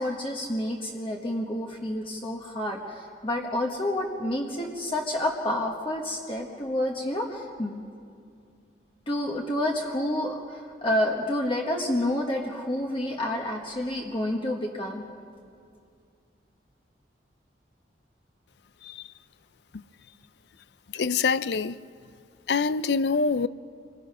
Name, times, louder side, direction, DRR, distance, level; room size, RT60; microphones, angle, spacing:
voice 1, 0.0-7.8 9.1-15.0, left 1 dB, 30° left, 1.3 m, -29 dB
voice 2, 20.9-21.8 22.5-23.5, left 5 dB, 70° left, 0.5 m, -25 dB
27.0 x 20.5 x 5.5 m
head